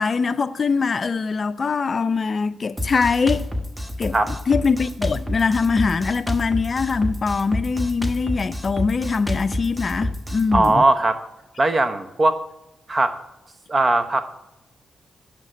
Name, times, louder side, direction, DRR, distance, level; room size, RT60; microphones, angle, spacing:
voice 1, 0.0-3.5 4.0-10.8, left 5 dB, 50° left, 0.4 m, -22 dB
Drum kit, 2.8-10.7, left 1 dB, 5° right, 1.1 m, -28 dB
voice 2, 10.5-11.2 11.6-12.4 12.9-13.2 13.7-14.4, right 2 dB, 35° right, 1.0 m, -19 dB
9.7 x 5.8 x 6.3 m
cardioid pair, 60°, 0 cm